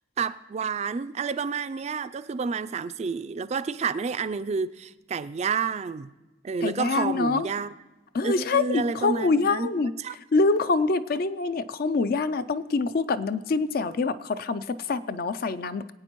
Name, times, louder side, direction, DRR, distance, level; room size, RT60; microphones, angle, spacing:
voice 1, 0.2-6.1 6.4-7.7 8.2-10.2, right 5 dB, 35° right, 0.3 m, -30 dB
voice 2, 6.6-7.5 8.1-9.9 10.3-15.9, left 3 dB, 55° left, 0.4 m, -25 dB
22.5 x 8.7 x 3.0 m
head